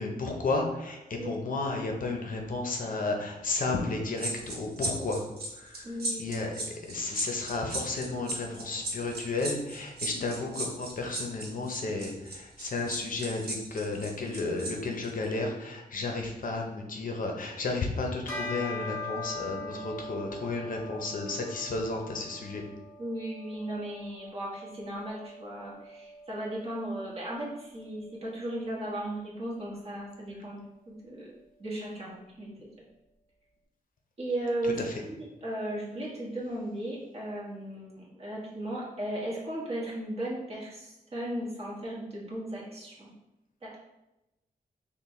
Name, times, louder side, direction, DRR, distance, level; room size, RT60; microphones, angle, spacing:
voice 1, 0.0-5.2 5.5-5.9 6.2-6.5 6.9-22.6 34.6-34.9, left 3 dB, 55° left, 2 dB, 0.6 m, -33 dB
sound 1, 4.2-14.7 15.0-15.2, right 2 dB, 80° right, 0.9 m, -36 dB
voice 2, 5.8-6.4 23.0-30.6 30.9-31.3 31.6-32.7 34.2-35.1 35.4-43.1 43.6-43.8, right 1 dB, 40° right, -6 dB, 1.3 m, -36 dB
Bell, 18.3-28.0, left 2 dB, 15° left, 0.9 m, -42 dB
5.5 x 2.2 x 3.1 m, 0.94 s
wide cardioid pair, 150°, 16 cm